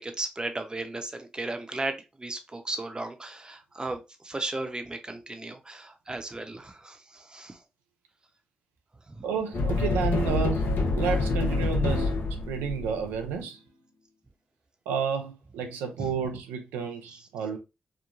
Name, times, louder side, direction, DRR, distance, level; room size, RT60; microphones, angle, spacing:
voice 1, 0.0-7.6 9.2-9.3, right 2 dB, 25° right, 0.7 m, -35 dB
voice 2, 9.2-13.6 14.9-17.6, right 6 dB, 90° right, 0.4 m, -31 dB
sound 1, 9.5-13.2, left 3 dB, 70° left, 0.7 m, -26 dB
3.0 x 2.1 x 2.4 m
supercardioid pair, 40°, 4 cm